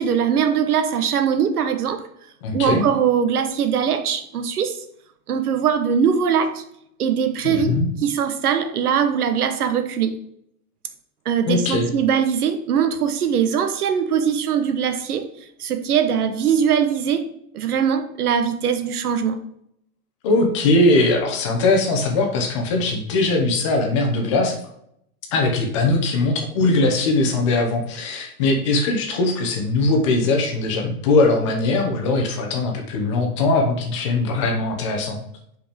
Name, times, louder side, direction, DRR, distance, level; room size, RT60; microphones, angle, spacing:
voice 1, 0.0-2.0 2.5-4.8 5.3-6.6 7.0-10.2 11.2-15.3 15.6-17.2 17.5-19.4, right 7 dB, 75° right, 8 dB, 1.2 m, -21 dB
voice 2, 2.4-2.8 7.4-7.9 11.5-11.9 20.2-24.6 25.3-35.2, left 2 dB, 20° left, 2 dB, 0.9 m, -20 dB
5.3 x 5.2 x 5.1 m, 0.73 s
supercardioid pair, 175°, 45 cm